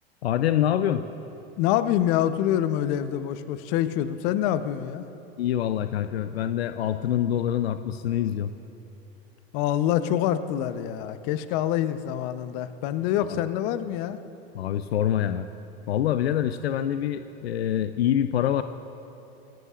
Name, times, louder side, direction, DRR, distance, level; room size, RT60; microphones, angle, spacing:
voice 1, 0.2-1.0 5.4-8.5 13.2-13.4 14.5-15.5 15.9-18.6, left 10 dB, 85° left, 10 dB, 0.6 m, -25 dB
voice 2, 1.6-5.1 9.5-14.2, left 11 dB, 60° left, 11 dB, 0.9 m, -26 dB
28.0 x 15.0 x 2.5 m, 3.0 s
hypercardioid pair, 95°, 31 cm